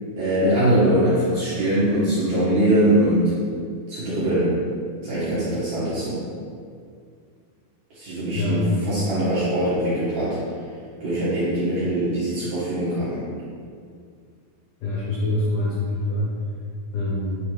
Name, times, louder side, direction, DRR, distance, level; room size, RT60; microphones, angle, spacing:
voice 1, 0.2-3.3 3.9-4.5 5.0-6.2 7.9-10.4 11.0-13.2, right 1 dB, 60° right, -11 dB, 2.2 m, -22 dB
voice 2, 14.8-16.3 16.9-17.3, left 2 dB, 85° left, -6 dB, 1.8 m, -25 dB
9.2 x 3.6 x 3.1 m, 2.2 s
omnidirectional pair, 5.0 m